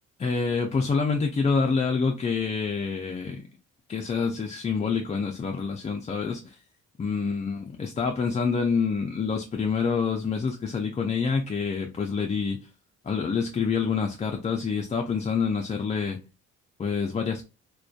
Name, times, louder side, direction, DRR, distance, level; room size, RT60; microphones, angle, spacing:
voice 1, 0.2-3.5 3.9-6.6 7.0-12.6 13.0-16.2 16.8-17.4, left 5 dB, 25° left, 0.4 m, -27 dB
2.5 x 2.2 x 2.3 m
cardioid pair, 90°, 30 cm